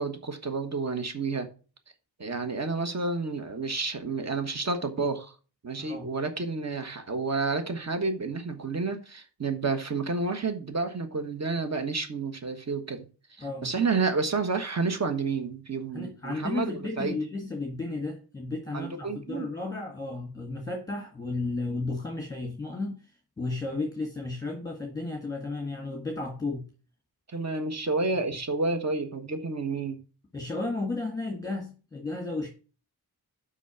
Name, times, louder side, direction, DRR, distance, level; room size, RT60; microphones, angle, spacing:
voice 1, 0.0-1.5 2.2-5.3 5.6-13.0 13.4-17.2 18.7-19.5 27.3-30.0, right 4 dB, 45° right, 1.3 m, -30 dB
voice 2, 15.9-23.1 23.4-26.6 30.3-32.5, left 3 dB, 10° left, 1.7 m, -33 dB
6.1 x 5.6 x 7.0 m
wide cardioid pair, 120°, 39 cm